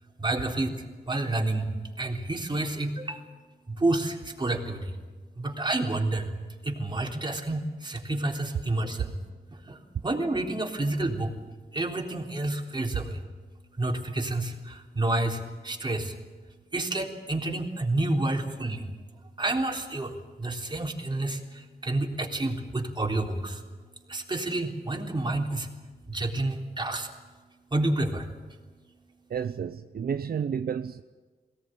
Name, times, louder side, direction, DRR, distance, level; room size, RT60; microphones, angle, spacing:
voice 1, 0.2-0.8 1.1-1.7 2.0-3.2 3.7-5.0 5.4-6.3 6.6-9.2 9.5-11.3 11.7-13.2 13.8-16.2 16.7-18.9 19.4-23.6 24.1-25.7 26.1-27.1 27.7-28.3, right 2 dB, 25° right, 3.7 m, -29 dB
voice 2, 29.3-31.0, right 7 dB, 65° right, 0.7 m, -31 dB
21.5 x 18.0 x 9.2 m
cardioid pair, 75°, 17 cm